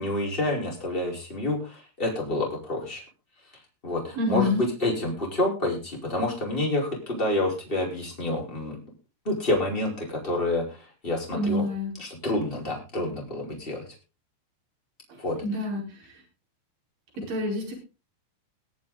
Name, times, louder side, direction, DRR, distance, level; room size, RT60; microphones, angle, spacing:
voice 1, 0.0-3.0 3.8-8.8 9.2-10.8 11.0-11.7 12.0-13.9 15.2-15.4, left 1 dB, 10° left, -1 dB, 4.5 m, -28 dB
voice 2, 4.2-4.7 11.3-11.9 15.4-15.8 17.3-17.7, left 2 dB, 45° right, 0 dB, 6.2 m, -27 dB
22.0 x 7.5 x 4.0 m, 0.31 s
omnidirectional pair, 5.8 m